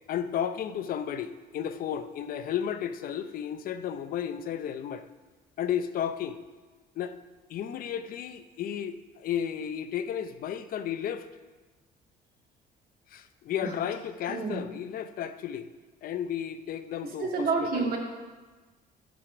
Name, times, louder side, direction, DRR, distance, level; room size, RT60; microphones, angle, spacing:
voice 1, 0.1-5.0 5.6-6.4 7.0-7.2 7.5-11.3 13.1-15.7 16.0-17.9, left 9 dB, 60° left, 10 dB, 0.6 m, -33 dB
voice 2, 14.3-14.6 17.2-18.0, right 4 dB, 60° right, 0 dB, 2.0 m, -28 dB
11.5 x 4.9 x 4.9 m, 1.3 s
cardioid pair, 110°, 17 cm